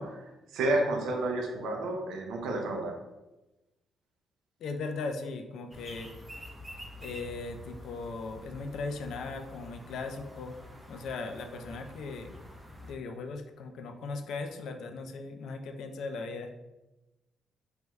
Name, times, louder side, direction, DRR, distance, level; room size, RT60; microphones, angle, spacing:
voice 1, 0.0-3.0, right 2 dB, 80° right, 3 dB, 0.5 m, -31 dB
voice 2, 4.6-6.1 7.0-10.6 10.9-12.3 12.8-16.5, left 3 dB, 75° left, 5 dB, 0.3 m, -38 dB
sound 1, 5.7-12.9, equal, 10° right, 0.5 m, -48 dB
3.4 x 2.1 x 3.0 m, 1.0 s
cardioid pair, 90°, 0 cm